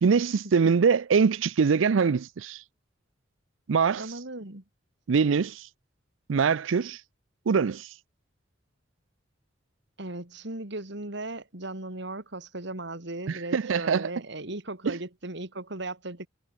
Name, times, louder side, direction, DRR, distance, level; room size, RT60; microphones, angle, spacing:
voice 1, 0.0-2.6 3.7-4.1 5.1-5.7 6.3-7.0 7.5-7.9 13.3-14.1 14.9-15.0, right 5 dB, 90° right, 0.5 m, -23 dB
voice 2, 3.9-4.6 10.0-16.3, right 2 dB, 65° right, 3.1 m, -37 dB
head